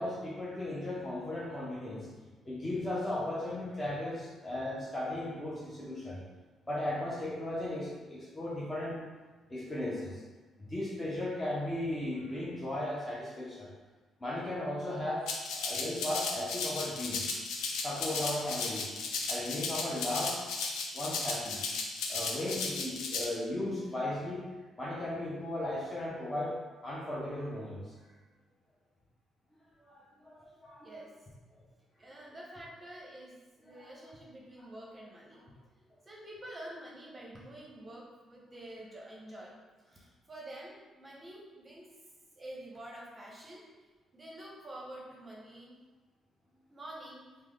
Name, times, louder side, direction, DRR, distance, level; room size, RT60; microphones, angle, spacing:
voice 1, 0.0-2.1 2.5-6.2 6.7-9.0 9.5-10.1 10.6-13.7 14.2-17.3 17.8-19.0 19.3-20.4 20.9-21.7 22.1-24.5 24.8-27.8 29.9-30.9 33.7-33.8, left 1 dB, 20° left, -6 dB, 0.6 m, -36 dB
Rattle (instrument), 15.3-23.3, left 4 dB, 90° left, 0.4 m, -35 dB
voice 2, 30.8-31.1 32.0-35.5 36.0-39.6 40.3-41.9 42.4-43.6 44.1-45.8 46.7-47.3, right 1 dB, 25° right, -3 dB, 0.7 m, -47 dB
3.3 x 2.1 x 3.4 m, 1.3 s
cardioid pair, 90°, 0 cm